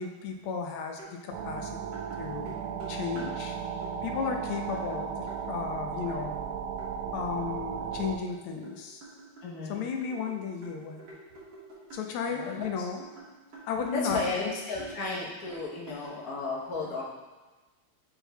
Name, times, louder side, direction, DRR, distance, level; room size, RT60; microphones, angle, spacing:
voice 1, 0.0-3.7 4.0-6.4 7.1-9.0 9.7-11.1 11.9-13.0 13.7-14.3 16.8-17.0, left 6 dB, 80° left, 3 dB, 1.6 m, -34 dB
sound 1, 1.0-1.1 1.4-3.4 3.8-3.9 4.2-5.4 6.1-6.2 6.8-6.9 7.4-8.8 9.0-12.1 12.6-14.2 14.4-15.0 15.5-16.2, right 2 dB, 55° right, 2.1 m, -48 dB
sound 2, 1.3-8.2, right 7 dB, 75° right, 1.3 m, -35 dB
voice 2, 9.4-9.9 12.2-12.7 13.9-17.0, left 3 dB, 50° left, -4 dB, 1.2 m, -34 dB
9.6 x 4.5 x 2.2 m, 1.2 s
omnidirectional pair, 2.4 m